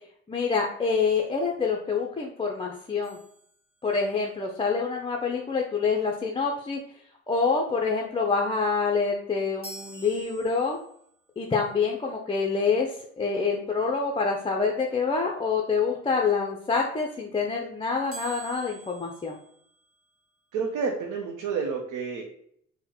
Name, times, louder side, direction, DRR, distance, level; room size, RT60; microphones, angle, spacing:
voice 1, 0.3-3.2 3.8-6.8 7.3-10.8 11.4-19.4, left 5 dB, 20° left, 0 dB, 0.5 m, -26 dB
sound 1, 3.0-4.3 9.6-11.1 18.1-20.2, right 3 dB, 45° right, 1.5 m, -47 dB
voice 2, 20.5-22.2, right 5 dB, 80° right, 1 dB, 0.6 m, -29 dB
3.7 x 2.1 x 4.2 m, 0.67 s
cardioid pair, 90°, 30 cm